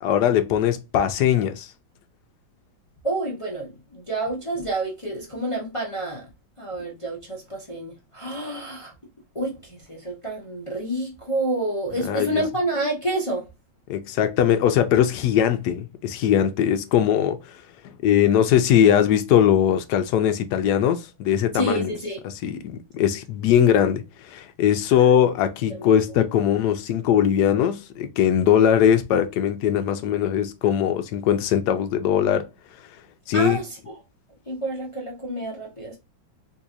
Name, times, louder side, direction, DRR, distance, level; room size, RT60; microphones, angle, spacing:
voice 1, 0.0-1.7 12.0-12.4 13.9-17.4 18.0-21.9 22.2-32.5 33.3-33.6, left 9 dB, 70° left, 1.0 m, -20 dB
voice 2, 3.0-6.3 6.6-8.9 9.3-13.5 21.5-22.2 25.0-25.1 25.7-26.2 33.3-34.0 34.5-36.0, right 2 dB, 45° left, 0.4 m, -29 dB
3.9 x 2.8 x 2.4 m
omnidirectional pair, 2.0 m